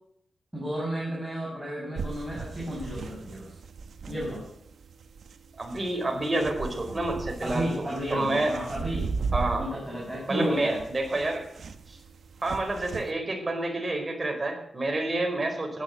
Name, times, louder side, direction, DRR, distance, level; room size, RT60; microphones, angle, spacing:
voice 1, 0.5-3.6 4.1-4.5 7.4-9.1 9.5-10.8, equal, 5° right, -5 dB, 6.1 m, -33 dB
sound 1, 2.0-13.1, right 5 dB, 75° right, 1.4 m, -37 dB
voice 2, 5.6-8.5 9.3-9.6 10.3-11.4 11.9-12.0 12.4-15.8, right 2 dB, 25° right, 2 dB, 4.8 m, -28 dB
16.0 x 10.0 x 8.1 m, 0.73 s
wide cardioid pair, 120°, 0 cm